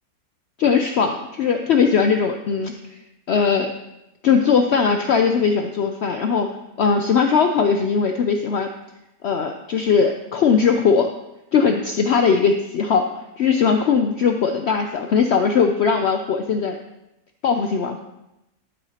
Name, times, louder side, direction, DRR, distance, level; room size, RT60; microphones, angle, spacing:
voice 1, 0.6-3.0 3.3-3.7 4.2-6.5 6.8-8.7 9.2-11.1 11.5-13.1 13.4-16.8 17.4-18.0, left 6 dB, 85° left, 5 dB, 0.5 m, -19 dB
12.0 x 7.9 x 2.8 m, 0.92 s
omnidirectional pair, 1.7 m